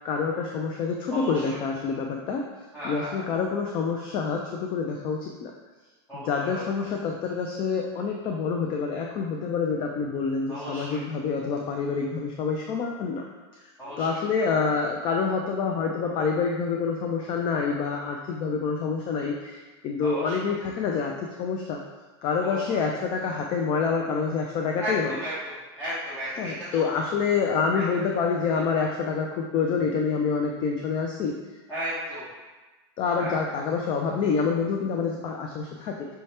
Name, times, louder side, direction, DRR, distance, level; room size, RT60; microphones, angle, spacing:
voice 1, 0.0-2.4 2.8-5.5 6.1-13.2 14.0-21.8 22.2-25.1 26.4-31.3 33.0-36.1, left 5 dB, 35° left, 1 dB, 0.4 m, -27 dB
voice 2, 1.1-1.6 2.7-3.2 6.1-6.7 10.5-11.0 13.8-14.2 20.0-20.4 22.4-22.8 24.8-26.8 27.7-28.0 31.7-32.3 33.2-33.4, equal, 10° left, -13 dB, 1.3 m, -35 dB
5.4 x 2.8 x 3.2 m, 1.2 s
supercardioid pair, 145°, 14 cm